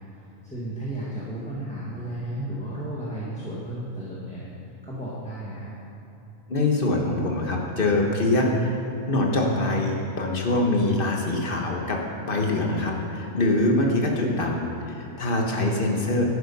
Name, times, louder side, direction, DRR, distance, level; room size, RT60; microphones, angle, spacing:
voice 1, 0.1-4.5 4.8-5.7, right 1 dB, 5° left, -7 dB, 1.5 m, -34 dB
voice 2, 6.5-8.8 9.1-16.2, left 2 dB, 40° left, 1 dB, 1.5 m, -24 dB
11.5 x 9.6 x 5.5 m, 2.8 s
omnidirectional pair, 1.4 m